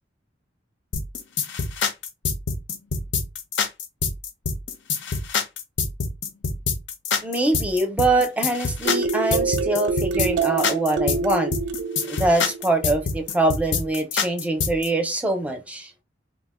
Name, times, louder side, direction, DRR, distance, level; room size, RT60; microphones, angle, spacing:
sound 1, 0.9-14.9, left 5 dB, 75° left, 0.6 m, -26 dB
voice 1, 7.2-11.5 12.1-15.9, right 2 dB, 10° right, 0.5 m, -23 dB
sound 2, 8.8-13.3, right 5 dB, 75° right, 0.3 m, -26 dB
2.4 x 2.1 x 3.5 m
head